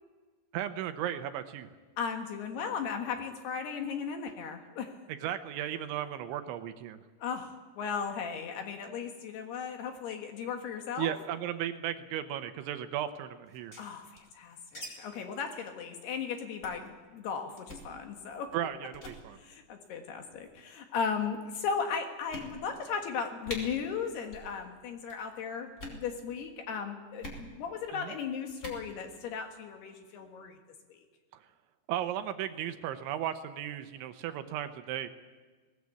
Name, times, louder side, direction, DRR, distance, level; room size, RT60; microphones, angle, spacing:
voice 1, 0.5-1.7 5.1-7.0 11.0-13.7 18.5-19.4 27.9-28.1 31.9-35.1, right 11 dB, 75° right, 9 dB, 3.0 m, -35 dB
voice 2, 2.0-5.0 7.2-11.1 13.8-18.5 19.3-30.6 30.9-31.0, left 6 dB, 65° left, 4 dB, 3.0 m, -36 dB
sound 1, 13.5-14.9 15.1-15.2 15.5-15.7 16.0-16.2 16.6-16.9 17.6-17.9 18.5-18.7 18.9-19.2 20.1-20.5 21.2-21.3 21.8-21.9 22.3-22.9 23.1-23.2 23.4-23.6 24.2-24.5 24.8-25.2 25.7-26.0 27.2-27.4 28.5-28.8, left 1 dB, 15° left, 4.0 m, -44 dB
19.5 x 19.5 x 8.4 m, 1.4 s
omnidirectional pair, 5.8 m